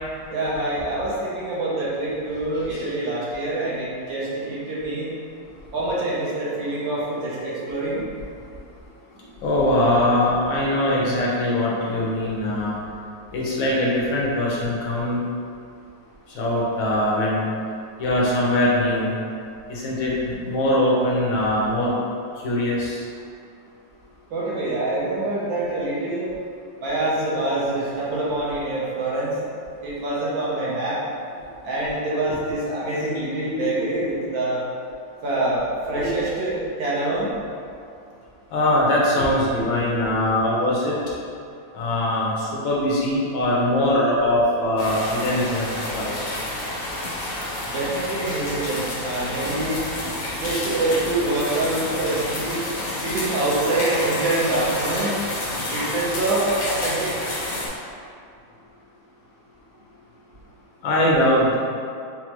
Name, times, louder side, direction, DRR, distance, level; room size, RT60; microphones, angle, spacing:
voice 1, 0.3-5.1 5.7-8.1 24.3-26.3 26.8-29.3 29.8-31.0 31.6-34.6 35.2-37.3 47.7-49.8 50.3-52.7 53.0-55.2 55.7-57.1, right 2 dB, 75° right, -7 dB, 1.6 m, -25 dB
voice 2, 9.4-12.8 13.3-15.2 16.4-17.4 18.0-19.1 19.7-22.0 22.4-23.0 36.0-36.1 38.5-41.0 41.7-46.1 60.8-61.6, left 1 dB, 75° left, -5 dB, 1.5 m, -22 dB
sound 1, 44.8-57.7, left 1 dB, 60° left, 0.9 m, -29 dB
5.6 x 2.2 x 3.0 m, 2.5 s
omnidirectional pair, 2.2 m